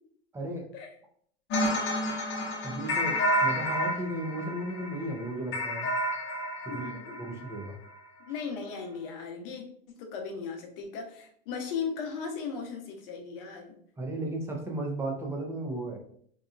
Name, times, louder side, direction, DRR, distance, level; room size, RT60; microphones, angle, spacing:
voice 1, 0.3-0.7 2.6-5.9 6.6-7.8 14.0-16.0, right 1 dB, 10° right, 1 dB, 0.5 m, -35 dB
sound 1, 1.5-7.6, equal, 40° left, 0.8 m, -30 dB
voice 2, 6.7-7.5 8.2-9.7 10.0-13.7, left 6 dB, 65° left, 2 dB, 0.8 m, -37 dB
2.8 x 2.3 x 2.3 m, 0.62 s
supercardioid pair, 115°, 31 cm